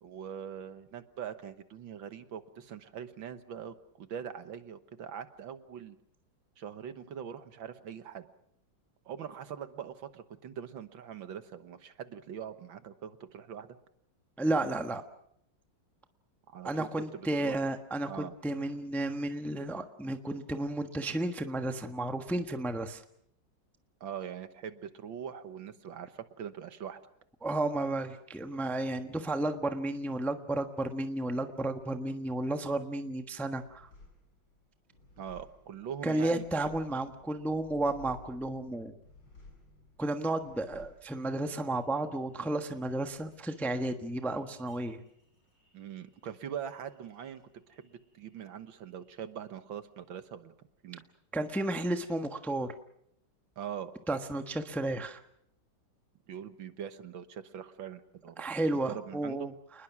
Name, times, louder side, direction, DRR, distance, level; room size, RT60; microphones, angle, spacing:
voice 1, 0.0-6.0 6.6-8.2 9.1-13.8 16.5-17.6 18.1-18.3 24.0-27.0 35.2-36.4 45.7-47.4 47.7-50.5 50.8-51.0 53.6-53.9 56.3-58.5 58.9-59.5, right 8 dB, 70° right, 10 dB, 1.9 m, -42 dB
voice 2, 14.4-15.0 16.6-23.0 27.4-33.9 36.0-38.9 40.0-45.0 51.3-52.7 54.1-55.2 58.4-59.5, right 2 dB, ahead, 6 dB, 0.9 m, -32 dB
sound 1, 33.6-48.5 48.8-49.6, left 2 dB, 75° left, 7.8 m, -58 dB
28.5 x 21.0 x 6.0 m, 0.72 s
omnidirectional pair, 2.3 m